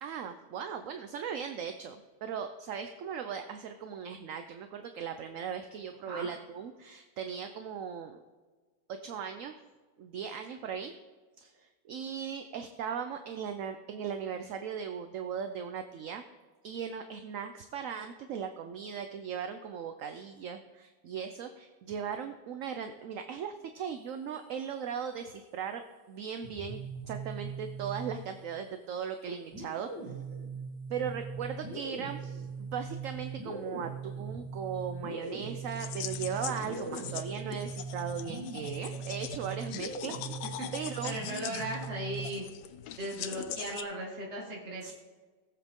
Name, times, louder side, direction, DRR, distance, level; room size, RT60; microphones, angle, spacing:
voice 1, 0.0-8.2 8.9-9.6 10.0-10.9 11.4-16.2 16.6-25.8 26.1-26.8 27.1-29.9 30.9-40.4 40.7-41.1 44.8-44.9, right 7 dB, 65° right, 7 dB, 0.9 m, -38 dB
sound 1, 26.4-28.6 29.5-42.4, right 4 dB, 90° right, 3.2 m, -40 dB
sound 2, 35.3-43.8, left 11 dB, 80° left, 1.2 m, -42 dB
voice 2, 41.0-42.4 43.0-44.9, right 1 dB, 40° right, -3 dB, 2.1 m, -37 dB
18.5 x 7.6 x 3.6 m, 1.4 s
omnidirectional pair, 1.8 m